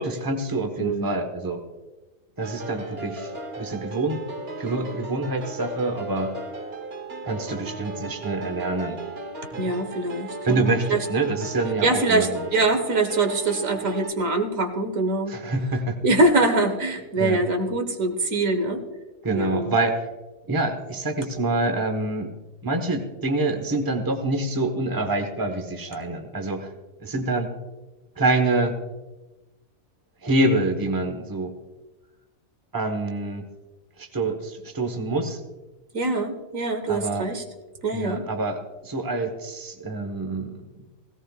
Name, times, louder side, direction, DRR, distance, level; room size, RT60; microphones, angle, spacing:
voice 1, 0.0-1.6 2.4-3.3 3.6-4.2 4.6-6.4 7.2-9.0 10.4-12.4 15.3-16.0 17.2-17.4 19.2-20.1 20.5-22.3 22.6-26.7 27.0-27.5 28.2-28.8 30.2-31.5 32.7-33.5 34.0-35.4 36.9-37.3 37.9-40.6, right 2 dB, 15° right, 5 dB, 1.1 m, -26 dB
voice 2, 0.8-1.1 9.6-11.0 11.8-15.4 16.0-18.8 19.3-19.7 35.9-37.4 37.8-38.2, right 2 dB, 75° right, 5 dB, 1.7 m, -24 dB
sound 1, 2.4-14.1, right 2 dB, 50° right, 1.3 m, -36 dB
17.0 x 17.0 x 2.4 m, 1.1 s
omnidirectional pair, 1.4 m